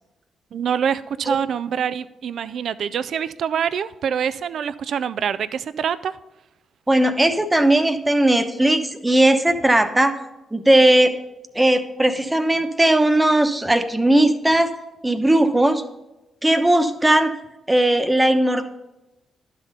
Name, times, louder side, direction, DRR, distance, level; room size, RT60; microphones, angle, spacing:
voice 1, 0.5-6.2, right 8 dB, 70° right, 15 dB, 0.3 m, -25 dB
voice 2, 6.9-10.2 10.5-11.2 11.5-14.7 15.0-15.8 16.4-17.4 17.7-18.7, right 1 dB, 15° right, 8 dB, 1.0 m, -18 dB
11.5 x 4.1 x 5.4 m, 0.97 s
supercardioid pair, 50°, 0 cm